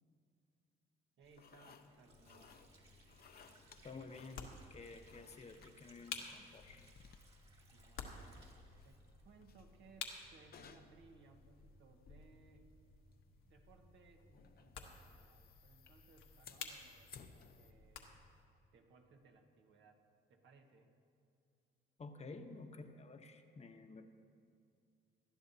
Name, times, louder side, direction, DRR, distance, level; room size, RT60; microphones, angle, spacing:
sound 1, 1.2-17.7, left 6 dB, 50° left, 0.7 m, -63 dB
Water / Sink (filling or washing), 1.2-9.8, right 2 dB, 30° right, 2.1 m, -67 dB
voice 1, 1.2-2.6 7.7-8.6 8.8-12.7 13.4-17.1 17.5-18.1 18.7-20.9, right 4 dB, 70° right, 3 dB, 1.4 m, -65 dB
sound 2, 2.1-18.5, left 5 dB, 80° left, 1.3 m, -54 dB
voice 2, 3.8-6.8 22.0-24.1, left 3 dB, 35° left, 6 dB, 1.0 m, -52 dB
19.0 x 12.0 x 2.8 m, 2.4 s
cardioid pair, 90°, 20 cm